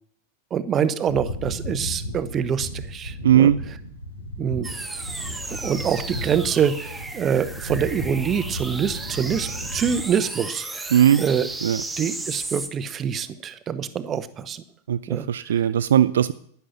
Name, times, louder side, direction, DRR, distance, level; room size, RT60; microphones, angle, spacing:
voice 1, 0.5-3.5 4.4-4.7 5.5-10.8 11.2-11.5 12.0-14.6 15.1-15.3, right 7 dB, 25° right, 14 dB, 0.9 m, -25 dB
sound 1, 1.1-10.1, equal, 80° left, 4.4 m, -34 dB
voice 2, 3.2-3.6 10.9-11.2 11.6-11.8 14.9-16.3, right 10 dB, 65° right, 15 dB, 0.4 m, -18 dB
sound 2, 4.6-12.7, right 2 dB, 5° right, 1.4 m, -34 dB
11.0 x 10.0 x 5.9 m, 0.63 s
figure-of-eight pair, 90°, 0 cm